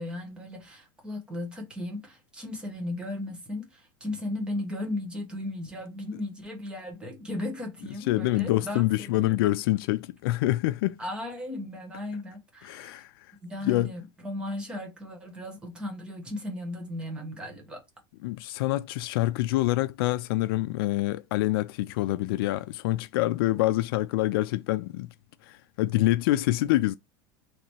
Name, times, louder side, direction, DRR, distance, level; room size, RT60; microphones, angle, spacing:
voice 1, 0.0-9.4 11.0-13.0 13.4-17.8, left 1 dB, 10° right, 0.9 m, -36 dB
voice 2, 8.1-11.0 12.6-13.1 13.6-13.9 18.2-25.1 25.4-27.0, left 16 dB, 85° left, 0.4 m, -26 dB
3.2 x 2.9 x 4.4 m
cardioid pair, 175°, 12 cm